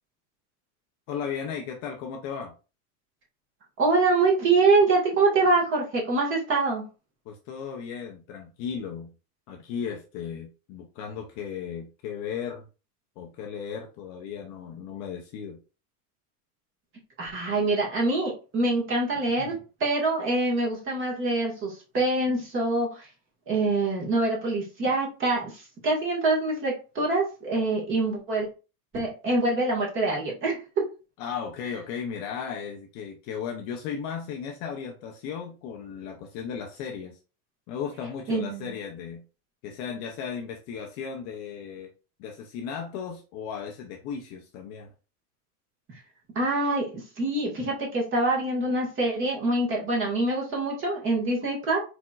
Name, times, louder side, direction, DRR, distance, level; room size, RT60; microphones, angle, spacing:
voice 1, 1.1-2.5 7.3-9.1 9.5-12.7 13.2-15.6 19.4-19.5 31.2-37.2 37.7-39.2 39.6-41.9 42.2-44.9, left 7 dB, 35° left, 1 dB, 0.6 m, -35 dB
voice 2, 3.8-6.9 17.2-23.1 23.5-28.5 28.9-30.6 38.3-38.7 46.3-51.8, right 2 dB, 25° right, -2 dB, 1.7 m, -25 dB
4.4 x 4.3 x 2.4 m, 0.33 s
supercardioid pair, 160°, 46 cm